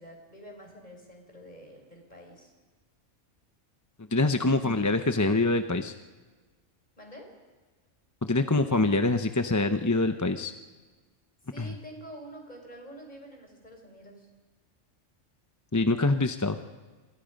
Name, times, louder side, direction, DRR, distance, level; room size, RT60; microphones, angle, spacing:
voice 1, 0.0-2.5 4.3-4.5 7.0-7.3 11.5-14.3, right 1 dB, 35° left, 2 dB, 5.4 m, -47 dB
voice 2, 4.1-5.9 8.2-10.5 11.6-11.7 15.7-16.6, left 2 dB, 20° left, 7 dB, 0.6 m, -25 dB
27.5 x 27.0 x 5.3 m, 1.4 s
omnidirectional pair, 1.3 m